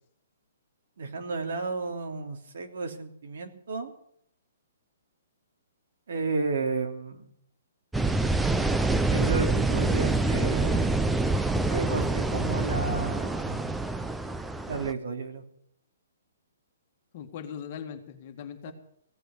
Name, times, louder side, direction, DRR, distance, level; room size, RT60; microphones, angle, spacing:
voice 1, 1.0-3.9 6.1-7.2 9.0-11.0 11.7-13.7 14.7-15.4 18.7-18.8, right 3 dB, 65° right, 5 dB, 2.9 m, -32 dB
sound 1, 7.9-14.9, right 2 dB, 5° right, 0.5 m, -26 dB
voice 2, 17.1-18.7, left 8 dB, 35° left, 6 dB, 1.8 m, -40 dB
16.5 x 8.1 x 9.5 m, 0.69 s
hypercardioid pair, 170°, 0 cm